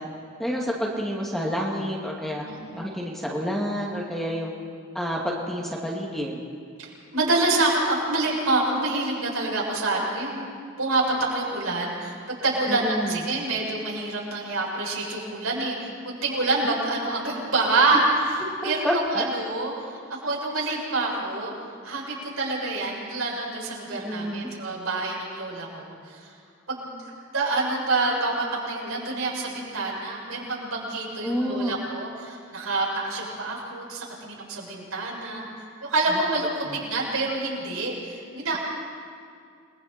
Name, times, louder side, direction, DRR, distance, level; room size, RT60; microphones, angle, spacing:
voice 1, 0.4-2.4 2.7-4.5 4.9-6.4 12.7-13.2 16.6-16.7 17.9-18.0 18.6-19.3 23.9-24.5 31.2-31.7 36.1-36.2 36.7-36.8, equal, ahead, -3 dB, 2.4 m, -29 dB
voice 2, 2.4-2.9 6.8-10.5 10.8-21.5 21.8-26.3 26.7-26.9 27.3-35.5 35.9-38.6, right 2 dB, 80° right, -3 dB, 7.2 m, -27 dB
29.0 x 22.0 x 4.5 m, 2.3 s
head